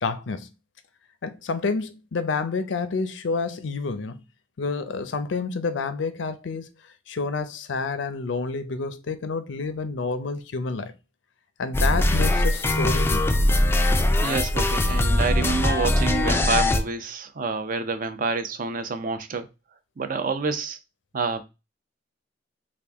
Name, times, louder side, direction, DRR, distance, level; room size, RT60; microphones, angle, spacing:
voice 1, 0.0-0.5 1.2-4.2 4.6-6.7 7.1-10.9 11.6-13.4, left 4 dB, 85° left, 0.5 m, -29 dB
sound 1, 11.7-16.8, left 1 dB, 15° left, 0.3 m, -21 dB
voice 2, 14.2-19.5 20.0-20.8 21.1-21.4, right 4 dB, 45° right, 0.5 m, -28 dB
3.5 x 2.5 x 3.4 m
head